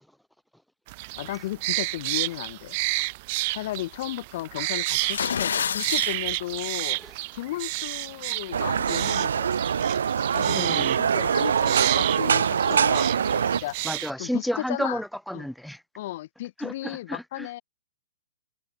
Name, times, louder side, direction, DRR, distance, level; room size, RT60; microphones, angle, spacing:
sound 1, 0.9-14.1, right 24 dB, 35° right, 1.4 m, -31 dB
voice 1, 1.2-2.8 3.5-7.0 7.3-9.5 10.3-13.7 14.2-15.0 15.3-15.5 16.0-17.6, left 16 dB, 40° left, 3.4 m, -35 dB
sound 2, 4.9-6.2, left 7 dB, 75° left, 1.9 m, -28 dB
sound 3, 8.5-13.6, right 7 dB, 80° right, 0.4 m, -23 dB
voice 2, 10.5-11.0 13.8-15.8 16.6-17.5, equal, ahead, 1.0 m, -31 dB
hypercardioid pair, 160°, 0 cm